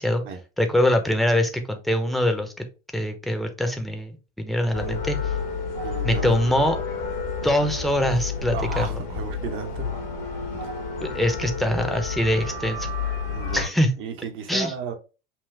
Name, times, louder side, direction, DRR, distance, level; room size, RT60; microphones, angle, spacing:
voice 1, 0.6-2.5 2.9-4.1 4.4-5.3 6.0-6.8 7.4-9.0 11.0-12.9 13.5-13.9 14.5-14.7, left 1 dB, ahead, 0.8 m, -23 dB
sound 1, 4.7-13.7, left 5 dB, 70° left, 1.4 m, -30 dB
voice 2, 5.8-6.3 8.5-9.9 10.5-10.7 13.3-13.7 14.0-14.9, right 6 dB, 45° right, 1.1 m, -34 dB
5.8 x 2.4 x 3.4 m
figure-of-eight pair, 80°, 30 cm